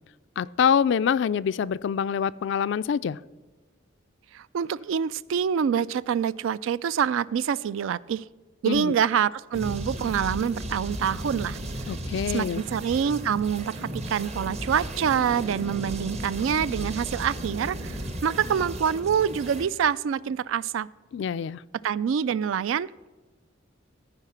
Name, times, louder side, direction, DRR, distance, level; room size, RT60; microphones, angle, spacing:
voice 1, 0.4-3.2 8.7-8.9 11.9-12.6 21.1-21.6, left 7 dB, 60° left, 18 dB, 0.3 m, -25 dB
voice 2, 4.3-8.2 8.6-11.6 12.3-20.9 21.8-22.9, right 8 dB, 75° right, 20 dB, 0.3 m, -26 dB
sound 1, 9.5-19.7, right 1 dB, 35° right, 0.9 m, -35 dB
14.5 x 4.9 x 5.8 m, 1.3 s
head